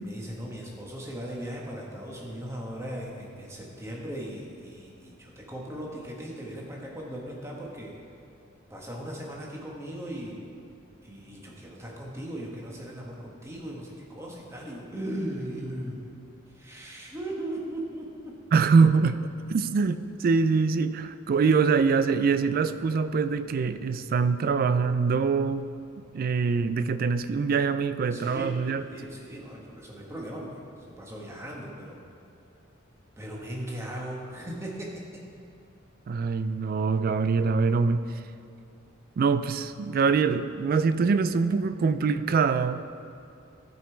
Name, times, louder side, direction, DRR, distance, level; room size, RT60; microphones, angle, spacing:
voice 1, 0.0-8.0 8.7-10.4 11.0-16.0 16.5-18.3 28.1-32.0 33.2-35.2, right 1 dB, 15° right, -2 dB, 1.2 m, -38 dB
voice 2, 18.5-25.7 26.1-28.8 36.1-38.1 39.2-42.8, right 5 dB, 45° right, 12 dB, 0.3 m, -24 dB
13.0 x 5.2 x 4.5 m, 2.5 s
head